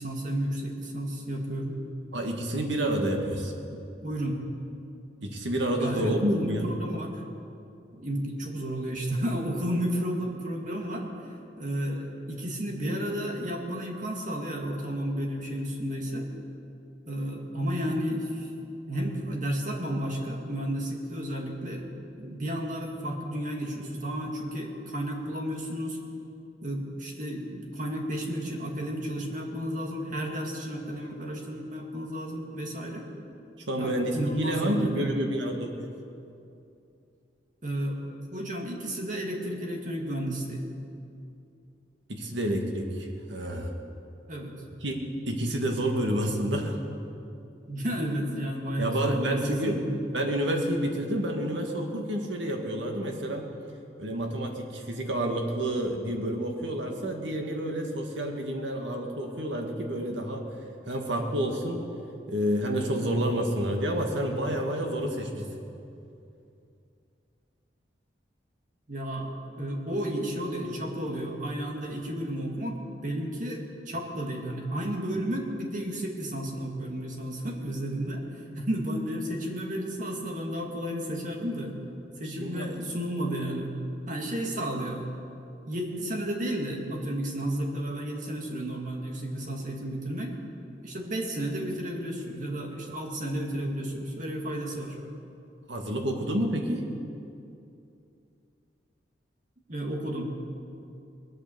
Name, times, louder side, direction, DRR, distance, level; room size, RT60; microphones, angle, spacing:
voice 1, 0.0-1.8 3.7-4.4 5.8-7.1 7.9-11.1 11.6-16.3 17.1-18.5 18.9-21.9 22.2-26.0 26.6-33.1 33.8-35.1 37.6-38.0 38.3-40.7 44.3-44.5 47.7-49.8 68.9-81.7 82.2-83.7 84.1-85.1 85.7-90.4 90.8-95.0 99.7-100.3, equal, 45° right, 0 dB, 2.1 m, -32 dB
voice 2, 2.1-3.5 5.2-6.7 33.7-35.9 42.1-43.7 44.8-45.0 45.3-46.8 48.8-49.8 50.1-53.5 54.0-60.4 60.9-61.8 62.3-65.5 82.4-82.7 95.7-96.8, right 1 dB, 80° right, 2 dB, 2.0 m, -29 dB
21.0 x 8.8 x 7.1 m, 2.6 s
head